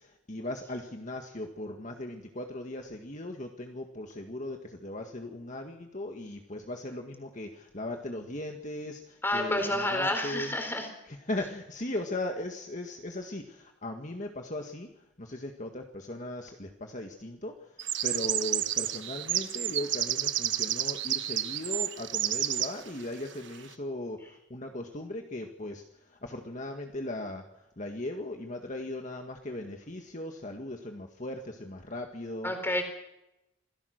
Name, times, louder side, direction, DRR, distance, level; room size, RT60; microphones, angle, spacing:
voice 1, 0.0-10.5 11.1-32.5, left 1 dB, 40° left, 3 dB, 1.8 m, -38 dB
voice 2, 9.2-10.9 32.4-32.8, left 1 dB, 10° left, 6 dB, 4.0 m, -29 dB
sound 1, 17.8-22.7, right 12 dB, 60° right, 1.3 m, -30 dB
27.0 x 17.5 x 6.5 m, 0.88 s
head